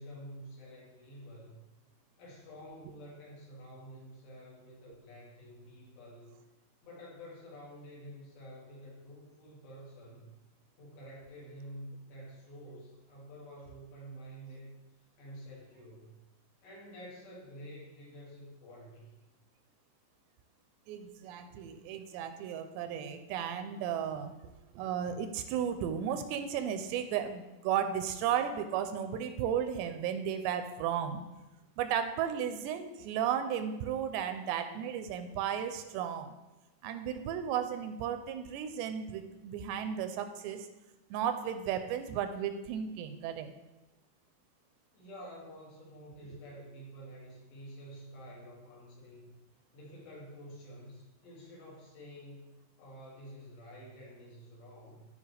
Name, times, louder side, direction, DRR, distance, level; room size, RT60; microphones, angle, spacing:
voice 1, 0.0-1.6 2.2-6.4 6.8-10.3 10.8-14.7 15.2-16.2 16.6-19.1 44.9-49.3 49.7-55.1, equal, 75° left, -5 dB, 4.5 m, -49 dB
voice 2, 20.9-24.4 24.8-31.2 31.8-36.3 36.8-40.7 41.1-43.5, right 9 dB, 85° right, 8 dB, 2.7 m, -34 dB
14.5 x 5.2 x 3.4 m, 1.0 s
omnidirectional pair, 5.1 m